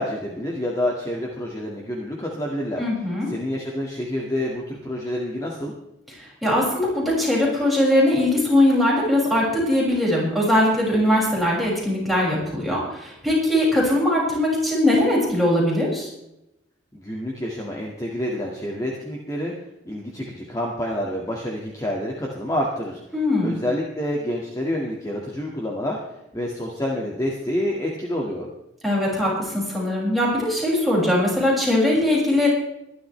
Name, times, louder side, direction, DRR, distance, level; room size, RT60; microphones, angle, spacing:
voice 1, 0.0-2.8 3.3-5.7 16.9-19.5 19.8-23.0 23.4-26.0 26.3-28.5, left 1 dB, 20° left, -2 dB, 2.1 m, -28 dB
voice 2, 2.8-3.3 6.4-16.1 23.1-23.5 28.8-32.5, left 1 dB, ahead, -6 dB, 6.4 m, -21 dB
23.0 x 12.0 x 3.4 m, 0.85 s
head